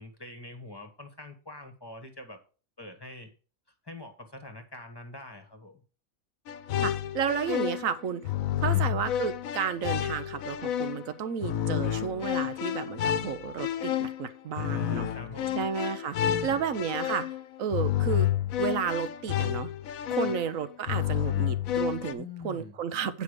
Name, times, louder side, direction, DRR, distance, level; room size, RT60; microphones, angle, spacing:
voice 1, 0.0-2.4 2.8-3.3 3.8-5.8 8.6-9.0 14.5-15.6 16.2-16.6 20.2-20.3 22.1-22.8, left 3 dB, 20° left, 5 dB, 1.3 m, -44 dB
sound 1, 6.5-22.1, left 11 dB, 85° left, 1.1 m, -30 dB
voice 2, 6.8-8.2 8.6-15.1 15.6-16.2 16.4-18.3 18.6-19.7 20.1-23.2, right 7 dB, 75° right, 12 dB, 1.2 m, -32 dB
9.4 x 5.3 x 4.9 m, 0.36 s
omnidirectional pair, 1.4 m